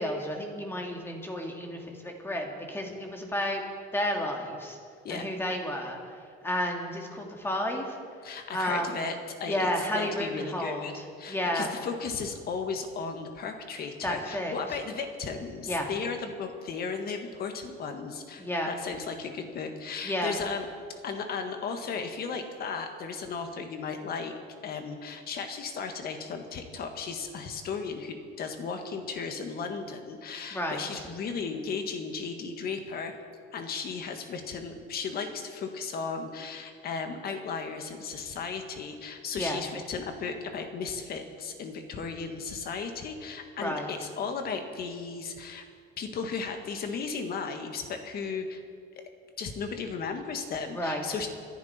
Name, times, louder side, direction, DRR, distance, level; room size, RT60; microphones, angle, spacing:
voice 1, 0.0-3.6 3.9-4.8 5.1-6.0 6.4-8.0 8.5-8.9 9.5-10.9 11.3-11.7 14.0-14.6 15.7-15.9 18.4-18.7 20.0-20.3 30.5-30.8 39.4-39.6 43.6-43.9 50.7-51.0, equal, 10° left, 1 dB, 2.1 m, -31 dB
voice 2, 8.2-20.7 21.0-24.3 24.6-33.1 33.5-45.6 46.0-48.6 49.0-49.1 49.4-51.3, left 5 dB, 50° left, 5 dB, 1.7 m, -35 dB
27.0 x 11.0 x 4.4 m, 2.1 s
cardioid pair, 155°, 21 cm